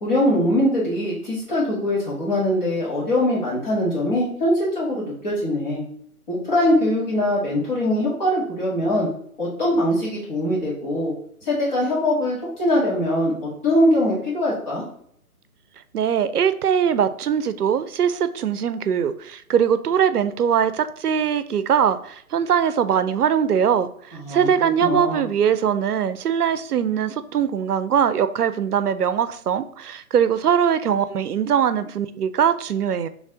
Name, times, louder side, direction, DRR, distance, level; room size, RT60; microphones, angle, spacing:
voice 1, 0.0-5.8 6.3-9.1 9.4-11.1 11.4-14.8 24.1-25.2, left 1 dB, 30° left, -6 dB, 1.8 m, -22 dB
voice 2, 15.9-33.1, right 8 dB, 85° right, 13 dB, 0.6 m, -21 dB
3.9 x 3.2 x 3.7 m, 0.64 s
figure-of-eight pair, 145°, 45 cm